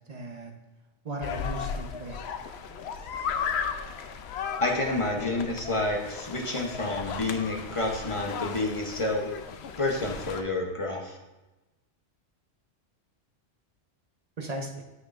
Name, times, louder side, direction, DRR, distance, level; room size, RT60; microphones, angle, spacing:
voice 1, 0.1-0.5 1.0-2.2 14.4-14.8, right 1 dB, 40° right, 2 dB, 0.7 m, -37 dB
sound 1, 1.2-10.4, left 6 dB, 70° left, 0.8 m, -35 dB
voice 2, 4.6-9.3 9.8-11.2, left 2 dB, 30° left, 1 dB, 0.8 m, -29 dB
9.4 x 6.1 x 2.4 m, 1.1 s
omnidirectional pair, 1.2 m